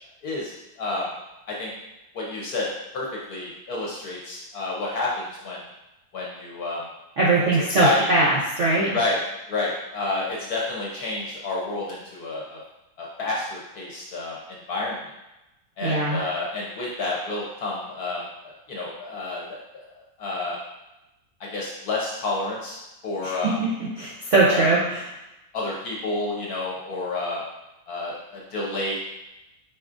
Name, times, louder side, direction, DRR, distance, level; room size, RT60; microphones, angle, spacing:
voice 1, 0.2-1.1 1.5-1.7 2.1-2.7 2.9-5.6 6.1-6.8 7.7-8.1 8.9-9.2 9.5-12.6 13.0-15.0 15.8-19.4 19.7-19.8 20.2-20.6 21.4-22.8 23.0-23.6 24.5-24.8 25.5-27.4 27.9-28.9, left 2 dB, 60° left, -4 dB, 1.1 m, -29 dB
voice 2, 7.2-9.0 15.8-16.2 23.2-25.1, right 2 dB, 65° right, -6 dB, 0.7 m, -21 dB
4.8 x 4.2 x 2.5 m, 0.95 s
omnidirectional pair, 2.2 m